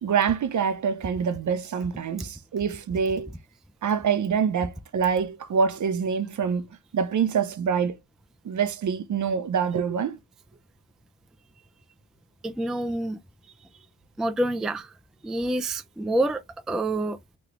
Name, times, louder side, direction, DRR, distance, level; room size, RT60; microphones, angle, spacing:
voice 1, 0.0-3.3 3.8-6.7 6.9-8.0 8.4-10.2, right 6 dB, 50° right, 0.6 m, -25 dB
voice 2, 12.4-13.2 14.2-14.9 15.2-17.4, right 1 dB, ahead, 0.4 m, -27 dB
3.1 x 2.3 x 3.0 m
supercardioid pair, 50°, 40 cm